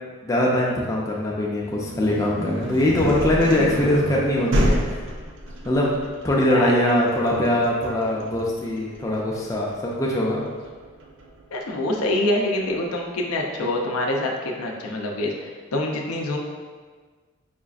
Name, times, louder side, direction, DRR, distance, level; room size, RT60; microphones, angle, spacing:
voice 1, 0.2-5.0 5.6-5.9 6.2-10.4, left 1 dB, 15° left, -4 dB, 0.3 m, -22 dB
sound 1, 1.6-11.4, equal, 55° right, 0.4 m, -29 dB
voice 2, 11.5-16.4, left 1 dB, 85° left, 0 dB, 0.5 m, -25 dB
5.0 x 2.4 x 2.4 m, 1.5 s
head